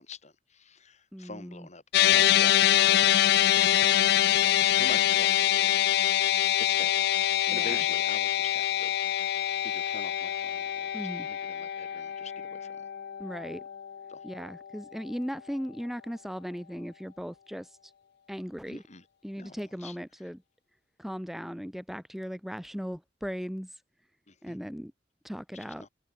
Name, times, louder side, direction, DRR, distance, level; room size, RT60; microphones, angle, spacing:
voice 1, 0.0-2.5 2.8-3.2 4.4-5.8 6.6-8.9 9.6-12.8 14.1-14.2 18.7-19.1 19.4-20.0 24.3-24.6 25.5-25.9, left 3 dB, 40° left, 5.4 m, -45 dB
voice 2, 1.1-1.7 7.5-7.8 10.9-11.3 13.2-13.6 14.2-17.9 18.3-18.8 19.2-20.4 21.0-23.7 24.4-24.9 25.2-25.9, equal, ahead, 2.3 m, -37 dB
sound 1, 1.9-14.4, left 12 dB, 60° left, 0.3 m, -25 dB
open air
head